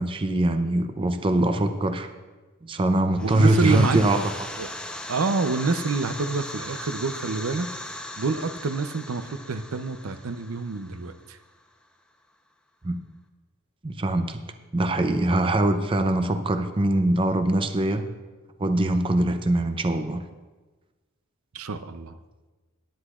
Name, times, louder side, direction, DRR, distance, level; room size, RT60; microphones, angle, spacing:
voice 1, 0.0-2.1 2.6-4.3 12.8-13.0 13.8-14.4 14.7-18.1 18.6-20.2, right 1 dB, 25° right, 8 dB, 0.5 m, -23 dB
sound 1, 3.1-11.7, left 1 dB, 5° left, 0.8 m, -38 dB
voice 2, 3.2-4.0 4.6-4.7 5.1-7.7 8.2-11.4 21.5-22.2, right 4 dB, 75° right, 9 dB, 0.6 m, -27 dB
18.0 x 9.8 x 2.4 m, 1.3 s
head